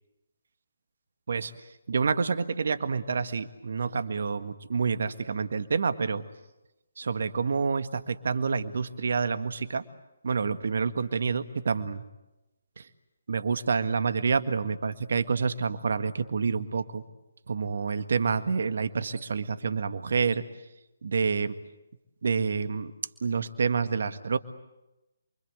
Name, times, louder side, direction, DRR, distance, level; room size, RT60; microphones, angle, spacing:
voice 1, 1.9-6.2 7.0-9.8 10.2-12.0 12.8-12.9 13.3-17.0 17.5-20.4 21.0-21.5 22.2-22.9 23.2-24.4, right 5 dB, 60° right, 10 dB, 1.7 m, -28 dB
28.5 x 24.5 x 8.1 m, 0.98 s
figure-of-eight pair, 145°, 0 cm